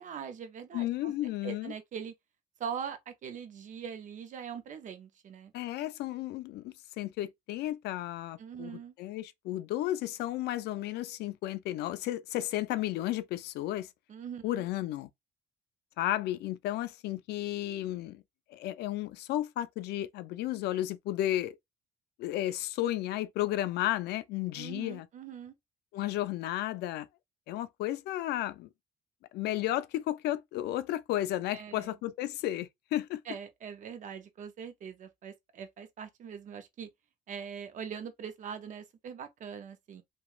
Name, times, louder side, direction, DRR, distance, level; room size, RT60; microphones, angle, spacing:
voice 1, 0.0-1.1 1.4-2.1 2.6-5.5 8.4-8.9 14.1-14.7 24.5-25.5 31.5-31.9 33.3-36.9 37.3-40.0, right 7 dB, 50° right, 0.6 m, -42 dB
voice 2, 0.7-1.7 5.5-13.9 14.4-15.1 16.0-18.2 18.5-21.6 22.2-25.1 25.9-27.1 27.5-28.7 29.3-33.2, left 14 dB, 75° left, 0.4 m, -33 dB
3.0 x 2.3 x 2.4 m
cardioid pair, 110°, 17 cm